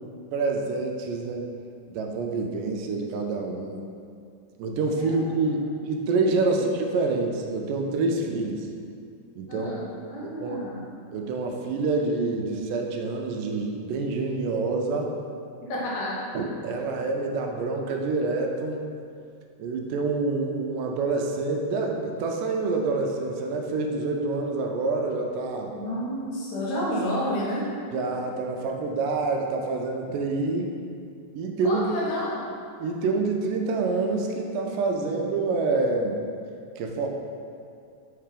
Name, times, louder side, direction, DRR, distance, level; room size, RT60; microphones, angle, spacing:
voice 1, 0.3-1.5 1.9-3.8 4.6-8.7 9.4-9.7 10.4-10.6 11.1-15.2 16.4-18.9 19.6-25.7 27.9-30.7 31.4-31.9 32.8-36.2 36.8-37.1, right 3 dB, 85° right, 2 dB, 2.1 m, -27 dB
voice 2, 4.9-5.7 6.5-6.7 9.5-10.9 15.6-16.1 25.7-27.6 31.6-32.5, equal, 75° left, -6 dB, 2.8 m, -31 dB
5.7 x 3.4 x 5.0 m, 2.4 s
omnidirectional pair, 3.8 m